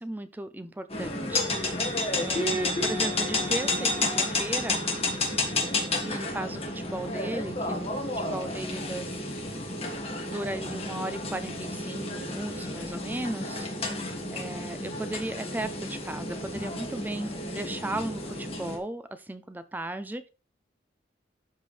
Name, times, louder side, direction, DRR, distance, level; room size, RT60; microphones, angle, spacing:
voice 1, 0.0-1.8 2.2-4.9 6.0-9.6 10.2-13.7 14.3-20.3, right 1 dB, 10° right, 11 dB, 0.4 m, -36 dB
sound 1, 0.9-18.8, left 2 dB, 35° left, 1.7 m, -31 dB
12.5 x 4.5 x 3.3 m, 0.34 s
head